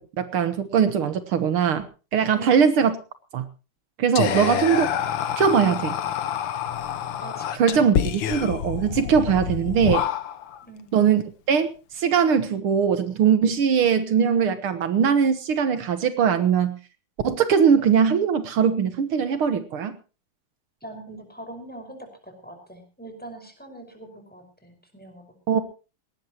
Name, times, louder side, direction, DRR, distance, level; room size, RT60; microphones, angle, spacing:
voice 1, 0.2-1.9 2.1-3.0 3.3-3.5 4.0-4.9 5.4-5.9 7.6-10.0 10.9-11.2 11.5-16.8 17.2-20.0 25.5-25.6, right 7 dB, 75° right, 10 dB, 2.1 m, -21 dB
Whispering, 4.2-10.6, left 9 dB, 65° left, 1.6 m, -27 dB
voice 2, 4.2-4.8 7.2-8.2 10.6-10.9 20.8-25.2, right 1 dB, 5° left, 5 dB, 5.3 m, -40 dB
19.0 x 19.0 x 3.0 m, 0.34 s
omnidirectional pair, 2.4 m